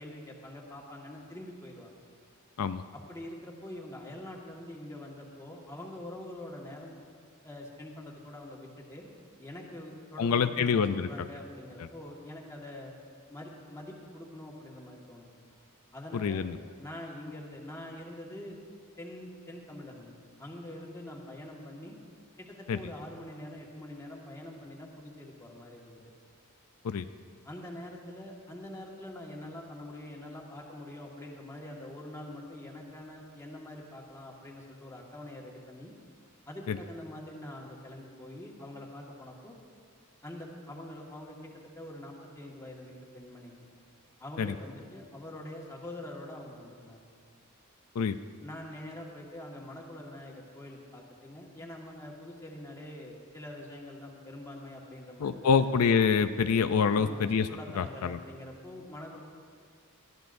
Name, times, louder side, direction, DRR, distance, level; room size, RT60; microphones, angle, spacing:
voice 1, 0.0-1.9 2.9-7.0 7.4-9.1 9.4-12.9 13.3-15.4 15.9-16.4 16.8-18.6 19.0-21.9 22.4-26.0 27.4-35.9 36.5-39.5 40.2-43.7 44.2-47.0 48.4-55.7 56.9-59.2, left 1 dB, 15° left, -2 dB, 1.7 m, -44 dB
voice 2, 10.2-11.1 16.1-16.6 22.7-22.8 26.8-27.1 36.7-36.8 44.4-44.5 48.0-48.2 55.2-57.5 57.8-58.2, left 6 dB, 80° left, 10 dB, 0.4 m, -26 dB
20.5 x 14.0 x 2.6 m, 2.1 s
head